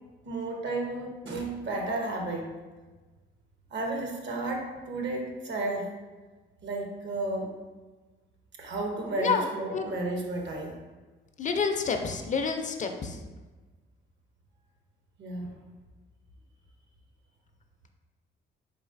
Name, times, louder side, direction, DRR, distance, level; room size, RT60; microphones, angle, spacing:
voice 1, 0.2-2.5 3.7-5.9 6.6-7.6 8.6-10.7 15.2-15.5, right 2 dB, 65° right, 1 dB, 0.8 m, -32 dB
voice 2, 11.4-13.2, left 5 dB, 40° left, 5 dB, 0.4 m, -28 dB
3.9 x 3.8 x 2.4 m, 1.3 s
cardioid pair, 90°, 20 cm